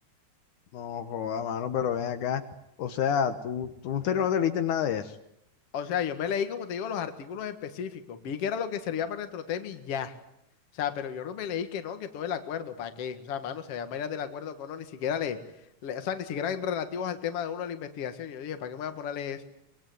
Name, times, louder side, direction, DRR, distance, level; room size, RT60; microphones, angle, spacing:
voice 1, 0.7-2.4 2.8-5.2, left 8 dB, 75° left, 9 dB, 2.6 m, -28 dB
voice 2, 5.7-10.1 10.7-15.4 15.8-19.4, left 8 dB, 50° left, 8 dB, 2.5 m, -33 dB
24.5 x 21.5 x 9.4 m, 0.78 s
omnidirectional pair, 3.6 m